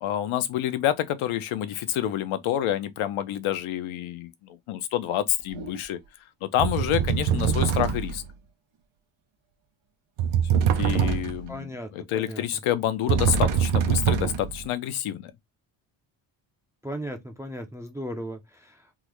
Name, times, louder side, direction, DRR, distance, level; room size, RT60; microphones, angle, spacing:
voice 1, 0.0-4.3 4.7-6.0 6.4-8.2 10.8-15.3, left 11 dB, 75° left, 0.7 m, -28 dB
sound 1, 5.6-5.8 6.6-8.3 10.2-11.5 13.1-14.6, right 8 dB, 90° right, 0.7 m, -24 dB
voice 2, 11.5-12.4 16.8-18.9, equal, 5° right, 0.4 m, -37 dB
3.5 x 2.1 x 3.0 m
cardioid pair, 145°, 49 cm